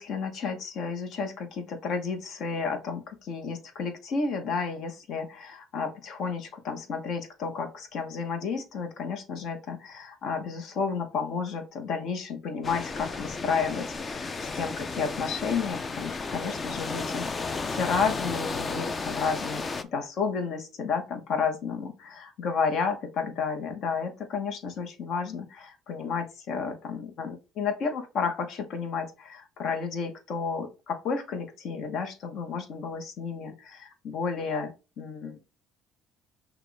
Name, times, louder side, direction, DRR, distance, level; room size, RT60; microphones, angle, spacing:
voice 1, 0.0-19.6 19.9-35.6, left 5 dB, 60° left, 7 dB, 1.1 m, -32 dB
sound 1, 12.6-19.8, left 4 dB, 30° left, 0.5 m, -33 dB
5.9 x 2.4 x 3.4 m, 0.30 s
supercardioid pair, 95°, 0 cm